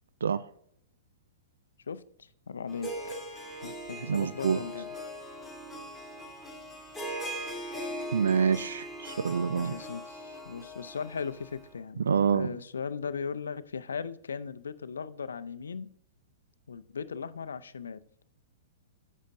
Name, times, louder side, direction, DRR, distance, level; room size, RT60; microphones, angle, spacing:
voice 1, 1.9-3.2 3.6-4.9 9.5-15.9 16.7-18.0, left 6 dB, 80° left, 0.5 m, -38 dB
Harp, 2.7-11.7, equal, ahead, 2.4 m, -40 dB
voice 2, 4.1-4.6 8.1-9.7 12.1-12.6, right 6 dB, 75° right, 0.3 m, -27 dB
10.0 x 7.3 x 2.6 m
hypercardioid pair, 110°, 0 cm